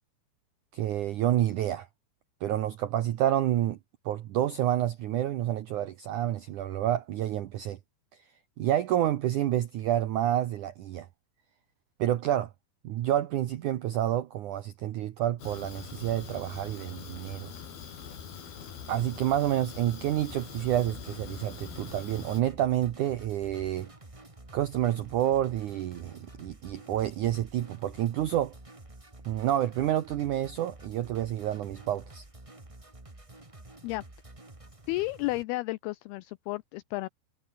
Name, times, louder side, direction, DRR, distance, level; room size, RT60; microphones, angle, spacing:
voice 1, 0.7-1.9 2.4-3.8 4.1-7.8 8.6-11.1 12.0-12.5 12.8-17.5 18.9-23.9 24.5-28.5 29.3-32.2, right 12 dB, 80° right, 1.7 m, -29 dB
Fire, 15.4-22.4, left 7 dB, 60° left, 5.3 m, -44 dB
sound 1, 20.2-35.4, right 2 dB, 20° right, 0.9 m, -50 dB
voice 2, 34.9-37.1, left 20 dB, 90° left, 2.2 m, -32 dB
omnidirectional pair, 5.1 m